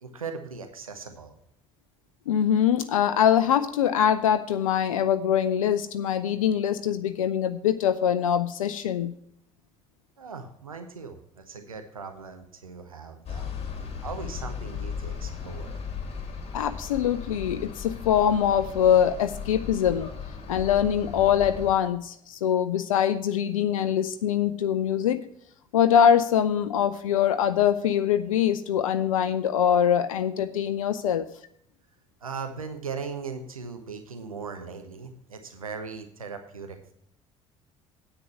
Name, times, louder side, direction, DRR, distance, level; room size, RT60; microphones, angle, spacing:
voice 1, 0.0-1.3 10.2-13.5 14.0-15.8 32.2-36.8, right 5 dB, 85° right, 6 dB, 0.9 m, -38 dB
voice 2, 2.3-9.1 16.5-20.1 20.5-25.2 25.7-31.2, left 9 dB, 80° left, 12 dB, 0.5 m, -23 dB
sound 1, 13.3-21.7, left 6 dB, 35° left, 2.8 m, -37 dB
9.8 x 8.2 x 5.7 m, 0.70 s
figure-of-eight pair, 55°, 17 cm